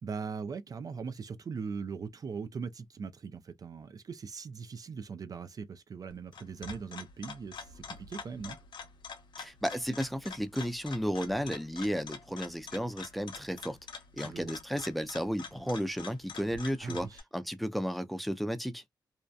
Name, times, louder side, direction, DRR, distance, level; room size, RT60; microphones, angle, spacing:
voice 1, 0.0-8.6 14.2-14.6 16.8-17.2, right 5 dB, 50° right, 0.4 m, -40 dB
sound 1, 6.1-17.2, left 5 dB, 80° left, 0.7 m, -46 dB
voice 2, 9.4-13.8 14.1-17.1 17.3-18.8, equal, ahead, 0.5 m, -33 dB
2.7 x 2.1 x 2.3 m
cardioid pair, 65°, 8 cm